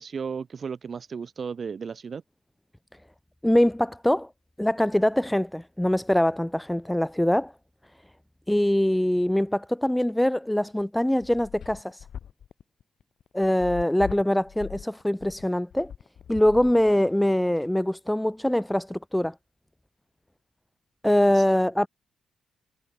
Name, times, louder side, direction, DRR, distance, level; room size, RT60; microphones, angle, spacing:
voice 1, 0.0-2.2 21.3-21.4, right 6 dB, 45° right, 1.5 m, -34 dB
voice 2, 3.4-4.3 4.6-7.5 8.5-12.0 13.3-15.9 16.3-19.3 21.0-21.9, left 1 dB, 5° left, 0.5 m, -23 dB
sound 1, 10.7-17.3, left 8 dB, 65° left, 1.8 m, -41 dB
cardioid pair, 85°, 0 cm